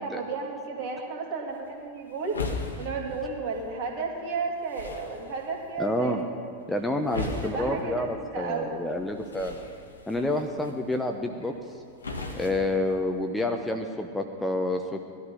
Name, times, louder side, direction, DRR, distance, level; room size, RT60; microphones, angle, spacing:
voice 1, 0.0-2.4 2.8-6.2 7.2-8.8 10.1-10.3 12.5-12.6, right 4 dB, 45° right, 1 dB, 2.7 m, -33 dB
sound 1, 1.5-13.5, left 3 dB, 75° left, 1.5 m, -40 dB
voice 2, 5.8-6.2 6.7-9.7 10.1-11.5 12.3-15.0, left 1 dB, 5° left, 4 dB, 0.9 m, -28 dB
18.5 x 12.5 x 5.6 m, 2.3 s
figure-of-eight pair, 90°, 0 cm